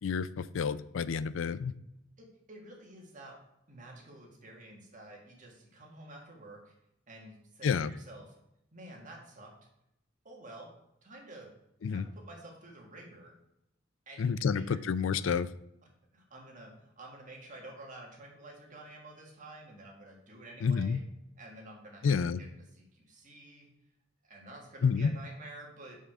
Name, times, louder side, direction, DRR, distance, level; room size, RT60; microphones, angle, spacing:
voice 1, 0.0-1.7 7.6-7.9 11.8-12.1 14.2-15.5 20.6-21.0 22.0-22.4 24.8-25.1, left 6 dB, 80° left, 15 dB, 0.4 m, -29 dB
voice 2, 2.2-3.3 3.7-6.7 7.1-8.3 8.7-9.5 10.2-10.7 11.0-11.5 11.9-13.3 14.0-14.8 16.1-21.0 21.4-22.5 22.7-23.7 24.2-26.0, right 2 dB, 40° right, -1 dB, 1.7 m, -50 dB
6.2 x 5.6 x 4.9 m, 0.79 s
head